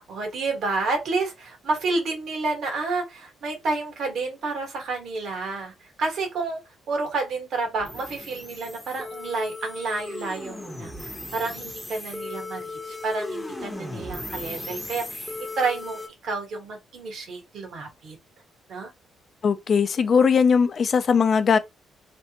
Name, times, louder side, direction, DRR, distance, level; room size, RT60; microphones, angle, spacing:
voice 1, 0.0-5.7 6.0-6.6 6.9-18.2 18.7-18.9, right 3 dB, 65° right, 1.3 m, -30 dB
sound 1, 7.8-16.1, left 2 dB, 5° left, 0.7 m, -36 dB
voice 2, 19.4-21.6, left 6 dB, 50° left, 0.5 m, -19 dB
3.4 x 2.2 x 2.8 m
cardioid pair, 90°, 0 cm